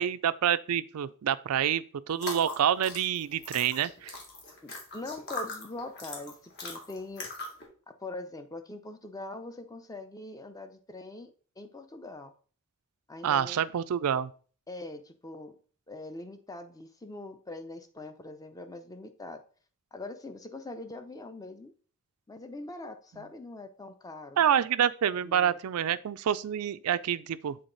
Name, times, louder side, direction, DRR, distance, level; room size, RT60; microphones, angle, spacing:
voice 1, 0.0-4.1 13.2-14.3 24.4-27.6, right 9 dB, 80° right, 0.4 m, -27 dB
sound 1, 2.1-7.6, left 2 dB, 50° left, 1.7 m, -40 dB
voice 2, 4.6-6.3 6.6-7.3 8.0-11.3 11.6-12.3 13.1-13.6 14.7-15.5 15.9-19.4 19.9-21.7 22.3-24.4 25.2-25.6, left 2 dB, 15° left, 0.6 m, -42 dB
7.9 x 3.8 x 3.9 m
head